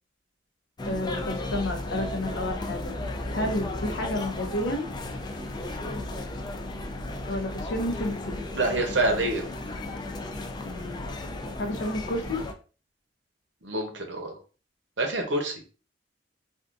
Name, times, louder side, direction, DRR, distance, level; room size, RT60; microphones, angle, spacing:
voice 1, 0.8-2.9 3.3-4.8 7.3-8.4 10.6-11.1 11.6-12.4, left 1 dB, 75° left, 4 dB, 0.7 m, -31 dB
sound 1, 0.8-12.5, left 2 dB, 25° left, 0.4 m, -34 dB
voice 2, 8.5-9.5 13.6-14.4 15.0-15.5, right 2 dB, 75° right, 3 dB, 0.9 m, -26 dB
3.5 x 2.5 x 2.5 m, 0.36 s
head